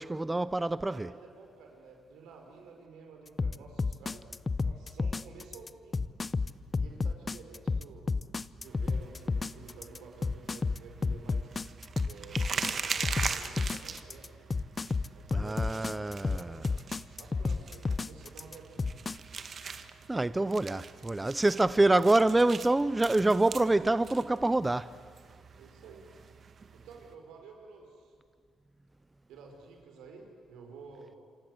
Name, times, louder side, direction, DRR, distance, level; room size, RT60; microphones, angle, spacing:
voice 1, 0.0-1.1 15.3-16.5 20.1-24.9, right 2 dB, 15° right, 0.6 m, -26 dB
voice 2, 0.9-4.3 4.6-6.0 6.8-8.1 8.6-14.3 15.1-16.0 16.3-16.5 17.2-18.9 23.6-23.9 25.6-26.1 26.7-28.1 29.3-31.1, right 4 dB, 85° right, 5.6 m, -51 dB
sound 1, 3.4-19.2, left 4 dB, 30° left, 0.7 m, -31 dB
sound 2, 8.7-27.1, right 6 dB, 45° right, 1.7 m, -42 dB
27.5 x 25.5 x 8.1 m
cardioid pair, 90°, 0 cm